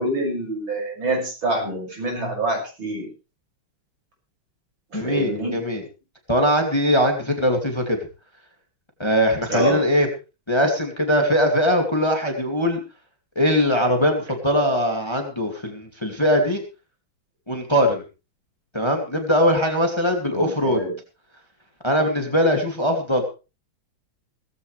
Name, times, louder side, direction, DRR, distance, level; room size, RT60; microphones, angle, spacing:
voice 1, 0.0-3.1 4.9-5.6 9.5-9.8 20.3-20.9, right 2 dB, 70° right, 1 dB, 7.2 m, -26 dB
voice 2, 4.9-5.8 6.3-8.0 9.0-10.1 10.5-12.8 13.4-16.6 17.5-18.0 18.7-20.8 21.8-23.2, equal, 15° left, 3 dB, 2.3 m, -21 dB
17.5 x 15.0 x 3.3 m, 0.32 s
omnidirectional pair, 2.2 m